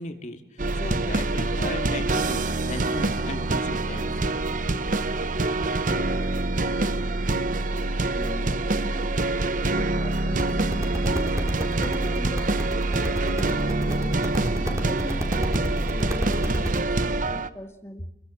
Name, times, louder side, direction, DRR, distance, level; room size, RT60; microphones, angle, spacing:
voice 1, 0.0-4.2, left 1 dB, 45° left, 6 dB, 2.9 m, -36 dB
sound 1, 0.6-17.5, right 2 dB, 50° right, 1.0 m, -25 dB
voice 2, 8.2-14.3 14.6-18.1, equal, 15° left, 5 dB, 2.4 m, -41 dB
sound 2, 10.3-16.8, equal, 20° right, 3.2 m, -31 dB
30.0 x 22.0 x 7.5 m, 0.71 s
head